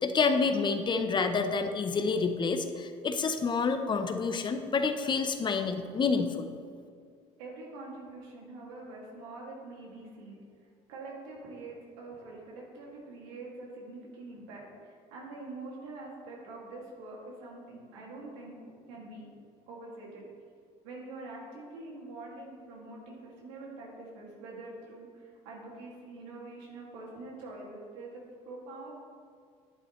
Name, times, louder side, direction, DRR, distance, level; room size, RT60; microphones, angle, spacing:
voice 1, 0.0-6.5, left 4 dB, 30° left, 7 dB, 0.8 m, -28 dB
voice 2, 7.4-10.4 10.9-18.5 18.9-19.3 19.7-20.3 20.8-28.2 28.5-28.9, right 2 dB, 90° right, -3 dB, 2.3 m, -45 dB
11.0 x 8.4 x 3.2 m, 2.2 s
supercardioid pair, 90°, 15 cm